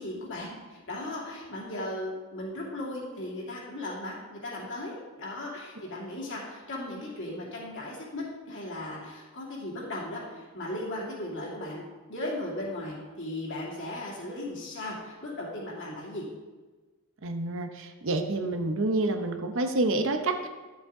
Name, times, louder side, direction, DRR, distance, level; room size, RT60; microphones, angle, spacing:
voice 1, 0.0-11.8 12.1-16.3, left 1 dB, 55° left, -4 dB, 2.6 m, -37 dB
voice 2, 17.2-20.5, right 2 dB, 60° right, 6 dB, 0.8 m, -28 dB
11.0 x 7.3 x 3.7 m, 1.3 s
head